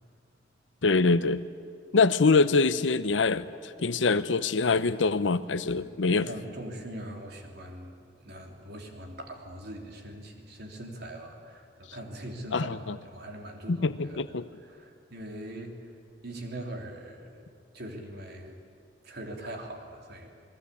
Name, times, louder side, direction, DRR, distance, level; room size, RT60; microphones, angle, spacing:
voice 1, 0.8-1.4 1.9-6.3 12.5-13.0 13.7-14.5, left 4 dB, 80° left, 13 dB, 0.7 m, -24 dB
voice 2, 5.8-14.2 14.6-15.8 16.2-17.4 17.7-18.6 19.0-20.3, right 1 dB, 60° right, 2 dB, 3.4 m, -42 dB
28.5 x 20.0 x 8.4 m, 2.2 s
head